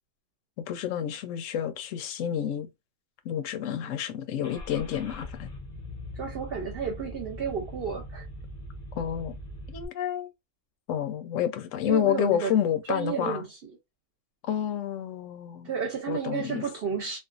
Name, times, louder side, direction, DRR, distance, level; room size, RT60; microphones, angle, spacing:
voice 1, 0.6-2.7 3.2-5.5 9.0-9.3 9.7-10.3 10.9-13.4 14.4-15.7 16.1-16.6, left 9 dB, 85° left, 0.9 m, -29 dB
Car / Engine starting, 4.4-9.9, equal, 45° left, 0.7 m, -41 dB
voice 2, 6.1-8.3 11.9-12.6 12.9-13.7 15.6-17.2, right 6 dB, 60° right, 0.8 m, -32 dB
2.5 x 2.3 x 2.4 m
omnidirectional pair, 1.3 m